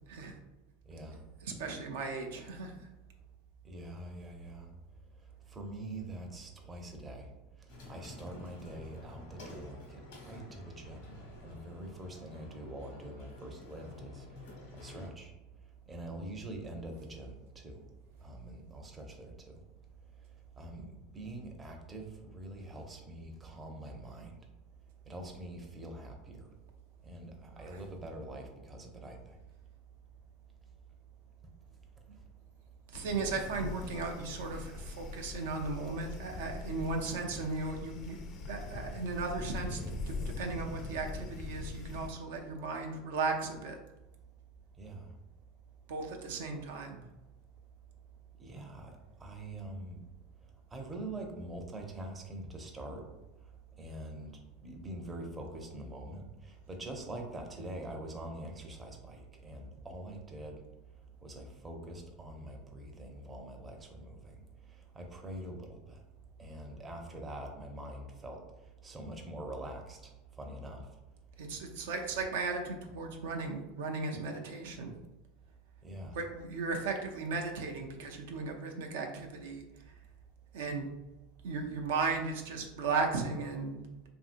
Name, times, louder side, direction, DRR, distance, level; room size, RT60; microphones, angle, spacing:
voice 1, 0.9-1.2 3.6-4.7 5.5-7.3 7.9-10.0 10.3-11.1 11.4-14.2 14.8-15.3 15.9-17.8 18.2-19.5 20.6-20.9 21.1-24.3 25.1-26.5 27.0-29.2 44.8-45.0 48.4-48.9 49.2-50.0 50.7-53.0 53.8-54.3 54.6-60.6 61.2-64.3 65.0-66.0 66.4-68.4 68.8-70.1 70.4-70.9 75.8-76.1, right 1 dB, 20° right, 2 dB, 0.5 m, -44 dB
voice 2, 1.4-2.9 6.2-6.3 27.6-27.9 32.9-38.2 38.5-39.8 40.1-43.8 45.9-47.0 71.4-74.9 76.1-79.6 80.5-80.9 81.4-83.8, right 4 dB, 80° right, 2 dB, 0.4 m, -36 dB
sound 1, 7.7-15.1, left 2 dB, 80° left, 1.0 m, -51 dB
sound 2, 32.9-42.1, left 3 dB, 45° left, 0.4 m, -42 dB
2.8 x 2.6 x 2.5 m, 1.0 s
supercardioid pair, 115°, 0 cm